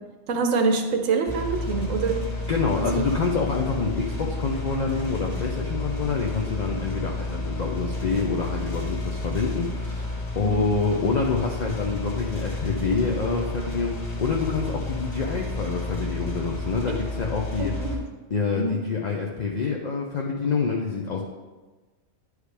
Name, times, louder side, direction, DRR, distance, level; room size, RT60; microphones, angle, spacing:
voice 1, 0.3-2.2 2.7-3.0 10.4-10.6 17.6-18.0 18.6-18.8, right 4 dB, 75° right, 5 dB, 1.1 m, -25 dB
sound 1, 1.3-17.9, left 2 dB, 30° left, 1.4 m, -31 dB
voice 2, 2.5-18.0 18.3-21.2, left 4 dB, 50° left, -1 dB, 0.5 m, -27 dB
9.7 x 4.9 x 3.3 m, 1.3 s
omnidirectional pair, 1.4 m